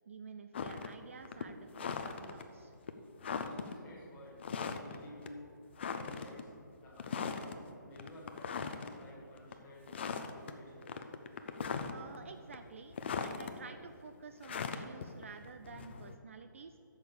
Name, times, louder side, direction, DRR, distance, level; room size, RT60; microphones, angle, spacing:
voice 1, 0.1-2.7 11.9-13.0 13.2-16.8, right 5 dB, 40° right, 8 dB, 0.4 m, -51 dB
sound 1, 0.5-0.9 1.2-2.4 2.9-3.0 3.2-3.7 4.4-5.0 5.3-5.4 5.8-6.4 7.0-7.6 8.0-8.9 9.4-9.5 9.9-10.5 10.8-12.2 12.5-13.5 14.4-16.2, left 6 dB, 35° left, 0.5 m, -39 dB
voice 2, 3.0-5.6 5.9-6.5 6.8-10.9 11.2-11.3 16.5-16.7, left 1 dB, 15° left, -4 dB, 1.7 m, -54 dB
8.3 x 6.4 x 6.9 m, 2.7 s
hypercardioid pair, 165°, 11 cm